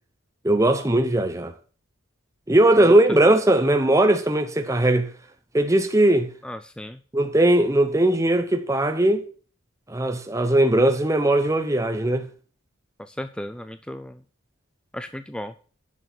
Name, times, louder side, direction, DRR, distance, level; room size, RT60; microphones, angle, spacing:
voice 1, 0.4-1.5 2.5-5.1 5.5-6.3 7.1-9.2 9.9-12.2, right 1 dB, 15° right, 0.9 m, -19 dB
voice 2, 6.4-7.0 13.0-14.2 14.9-15.5, left 1 dB, 5° left, 0.4 m, -35 dB
11.0 x 6.6 x 6.2 m
head